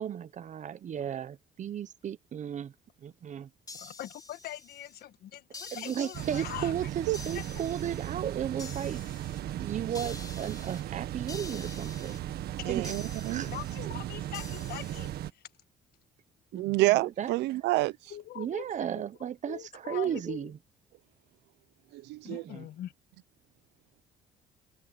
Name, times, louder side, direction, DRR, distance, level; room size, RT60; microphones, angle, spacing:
voice 1, 0.0-2.7 3.0-3.5 5.7-9.0 9.6-12.2 12.7-12.9 13.3-13.5 16.5-16.6 17.0-17.3 18.3-20.5 22.2-22.6, right 9 dB, 45° right, 1.1 m, -35 dB
voice 2, 3.7-6.7 7.3-7.4 12.6-12.8 13.4-15.1 18.1-19.0 19.4-20.5 22.2-22.9, left 12 dB, 70° left, 1.5 m, -42 dB
sound 1, 3.7-5.0 5.5-6.7 7.1-8.1 8.6-9.4 9.9-10.8 11.3-12.2 12.8-13.8 14.3-15.1, left 3 dB, 20° left, 4.2 m, -47 dB
sound 2, 6.1-15.3, right 13 dB, 70° right, 1.8 m, -37 dB
voice 3, 12.7-13.4 16.5-17.9 21.9-22.4, right 19 dB, 85° right, 0.8 m, -28 dB
cardioid pair, 110°, 17 cm